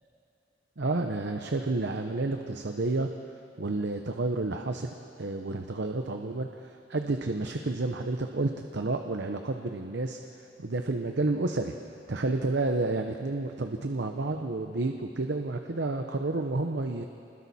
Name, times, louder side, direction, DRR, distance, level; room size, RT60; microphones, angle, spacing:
voice 1, 0.8-3.1 3.6-4.9 5.2-11.7 12.1-17.0, right 2 dB, 65° right, 5 dB, 0.9 m, -30 dB
29.0 x 21.0 x 4.3 m, 2.7 s
head